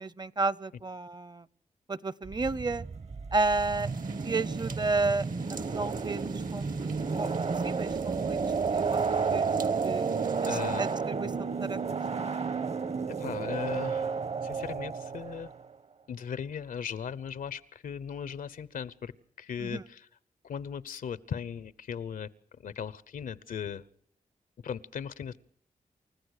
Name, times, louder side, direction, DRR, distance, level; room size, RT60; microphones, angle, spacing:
voice 1, 0.0-1.5 1.9-2.8 3.3-3.9 4.2-6.9 7.2-7.3 7.6-8.4 8.7-10.1 10.5-12.0 19.6-19.8, right 3 dB, 30° right, 21 dB, 0.7 m, -32 dB
sound 1, 2.3-15.7, right 5 dB, 50° right, 1.1 m, -31 dB
sound 2, 3.3-11.0, right 5 dB, 75° right, 2.0 m, -50 dB
voice 2, 10.5-10.8 13.2-14.1 14.4-15.5 16.1-19.1 19.4-20.0 20.4-22.3 22.6-23.8 24.6-25.4, left 7 dB, 85° left, 19 dB, 0.9 m, -37 dB
28.5 x 14.5 x 6.6 m, 0.63 s
cardioid pair, 60°, 14 cm